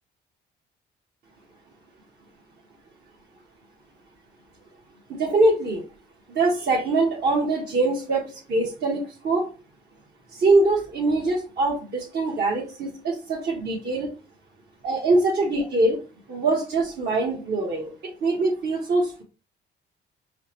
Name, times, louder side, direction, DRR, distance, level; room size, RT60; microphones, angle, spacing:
voice 1, 5.1-5.8 6.3-9.5 10.3-14.1 14.8-16.0 16.3-17.9 18.2-19.2, right 2 dB, 55° right, -3 dB, 1.1 m, -23 dB
4.8 x 2.1 x 2.9 m, 0.34 s
cardioid pair, 90°, 20 cm